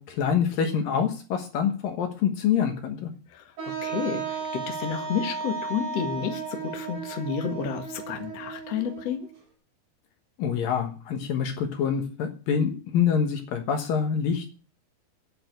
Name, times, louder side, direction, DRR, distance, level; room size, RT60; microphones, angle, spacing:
voice 1, 0.0-3.1 10.4-14.5, left 7 dB, 65° left, 5 dB, 2.8 m, -26 dB
voice 2, 3.3-9.3, left 7 dB, 50° left, 4 dB, 2.3 m, -31 dB
Wind instrument woodwind instrument, 3.6-9.3, right 5 dB, 50° right, 5.4 m, -35 dB
10.0 x 7.8 x 9.1 m, 0.37 s
omnidirectional pair, 4.7 m